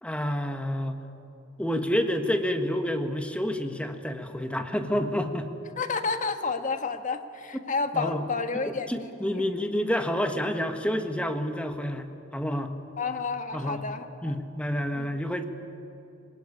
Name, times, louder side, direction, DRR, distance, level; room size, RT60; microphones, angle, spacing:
voice 1, 0.0-1.0 1.6-5.5 7.9-8.2 8.9-12.7 13.5-13.8 14.2-15.4, equal, 5° left, 6 dB, 1.4 m, -29 dB
voice 2, 5.8-9.1 9.5-9.6 13.0-14.3 14.9-15.2, left 4 dB, 40° left, 7 dB, 1.4 m, -30 dB
22.0 x 19.0 x 10.0 m, 3.0 s
head